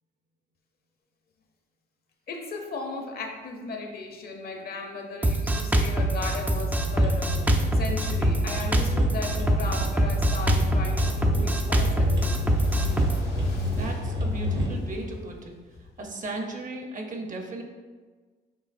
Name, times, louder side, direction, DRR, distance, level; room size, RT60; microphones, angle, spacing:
voice 1, 2.3-12.3, left 3 dB, 50° left, 3 dB, 0.7 m, -36 dB
Drum kit, 5.2-13.2, right 1 dB, 10° right, 0.3 m, -24 dB
sound 1, 6.5-14.7, left 1 dB, 65° right, 1.0 m, -30 dB
Fire, 11.5-16.1, left 2 dB, 80° left, 1.3 m, -36 dB
voice 2, 13.7-15.6 16.0-17.6, right 2 dB, 40° right, 2 dB, 0.8 m, -36 dB
6.9 x 2.8 x 2.6 m, 1.4 s
cardioid pair, 90°, 20 cm